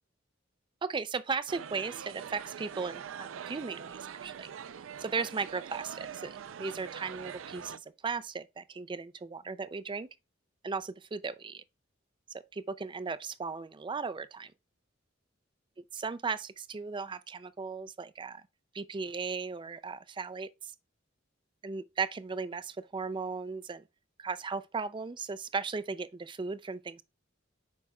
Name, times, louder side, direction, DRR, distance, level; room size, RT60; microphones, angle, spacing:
voice 1, 0.8-4.5 5.0-10.1 10.6-11.6 12.3-14.5 15.9-18.4 18.7-20.7 21.6-23.8 24.2-27.0, right 4 dB, 25° right, 0.4 m, -36 dB
sound 1, 1.5-7.8, right 8 dB, 85° right, 0.4 m, -43 dB
8.3 x 5.3 x 2.3 m
head